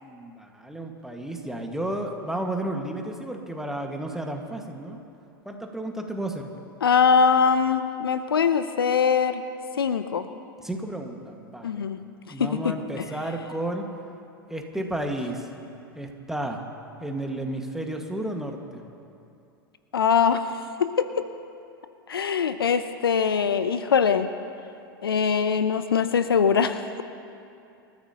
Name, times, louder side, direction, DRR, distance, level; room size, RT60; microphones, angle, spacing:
voice 1, 0.0-5.0 5.5-6.5 10.6-11.9 12.3-13.9 14.5-15.5 16.0-16.6 17.0-18.9, right 1 dB, 5° right, 2 dB, 1.7 m, -32 dB
voice 2, 6.8-9.4 9.8-10.3 11.6-12.0 12.4-13.0 19.9-20.5 20.8-21.1 22.1-24.3 25.0-27.0, left 6 dB, 80° left, 11 dB, 0.7 m, -22 dB
26.0 x 14.0 x 3.0 m, 2.6 s
figure-of-eight pair, 90°, 12 cm